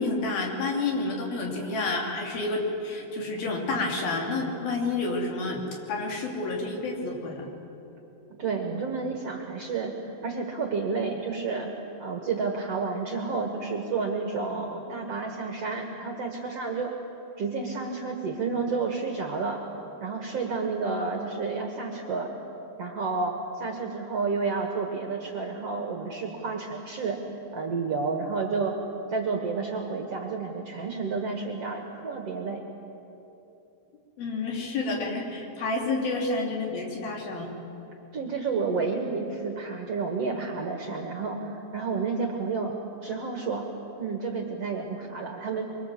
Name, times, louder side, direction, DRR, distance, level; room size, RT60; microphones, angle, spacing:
voice 1, 0.0-5.6 5.9-7.5 34.2-37.5, left 3 dB, 65° left, 0 dB, 4.7 m, -29 dB
voice 2, 8.4-11.7 12.0-16.9 17.4-19.6 20.0-22.3 22.8-27.2 27.5-28.8 29.1-32.6 38.1-42.7 43.0-43.6 44.0-45.6, right 4 dB, 50° right, 2 dB, 2.1 m, -30 dB
24.5 x 24.0 x 7.6 m, 3.0 s
omnidirectional pair, 4.6 m